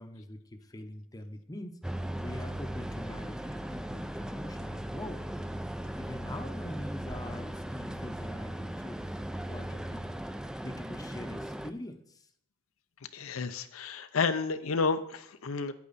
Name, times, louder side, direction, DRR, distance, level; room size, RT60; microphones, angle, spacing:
voice 1, 0.0-1.8 2.2-5.3 6.0-9.0 9.5-10.2 10.6-12.3, left 1 dB, 20° left, 6 dB, 0.7 m, -43 dB
sound 1, 1.8-11.7, right 1 dB, 5° right, 0.3 m, -38 dB
voice 2, 13.1-15.7, left 4 dB, 80° left, 10 dB, 0.6 m, -31 dB
9.2 x 8.4 x 4.1 m, 0.67 s
head